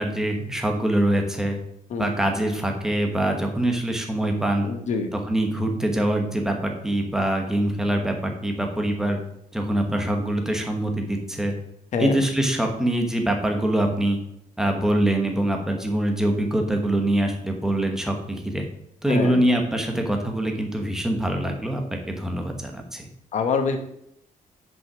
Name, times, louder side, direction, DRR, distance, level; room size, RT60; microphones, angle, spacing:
voice 1, 0.0-1.6 2.0-4.7 5.1-9.2 9.5-11.5 12.0-14.2 14.6-18.6 19.0-23.1, right 1 dB, 5° right, 3 dB, 1.0 m, -24 dB
voice 2, 4.6-5.1 11.9-12.2 19.1-19.4 23.3-23.8, left 5 dB, 50° left, 6 dB, 1.1 m, -25 dB
6.4 x 5.5 x 6.1 m, 0.74 s
wide cardioid pair, 175°, 15 cm